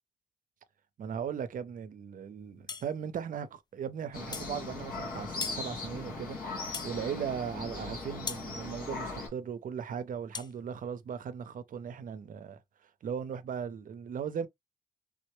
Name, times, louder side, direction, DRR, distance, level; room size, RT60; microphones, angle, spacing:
voice 1, 1.0-12.6 13.0-14.5, right 7 dB, 65° right, 0.5 m, -38 dB
sound 1, 2.7-2.9 4.3-4.5 5.4-5.6 6.7-7.0 8.3-8.5 10.3-10.5, left 5 dB, 30° left, 0.4 m, -38 dB
sound 2, 4.1-9.3, left 3 dB, 80° left, 2.0 m, -39 dB
3.5 x 2.1 x 3.0 m
cardioid pair, 80°, 15 cm